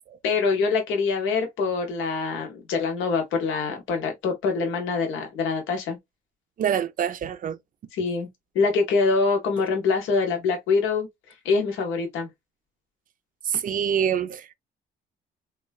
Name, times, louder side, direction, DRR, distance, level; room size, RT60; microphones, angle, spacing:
voice 1, 0.2-6.0 7.9-8.3 8.5-11.1 11.4-12.3, left 4 dB, 85° left, 0.8 m, -24 dB
voice 2, 6.6-7.6 13.4-14.5, right 8 dB, 45° right, 0.4 m, -25 dB
3.1 x 2.2 x 2.2 m
cardioid pair, 90°, 20 cm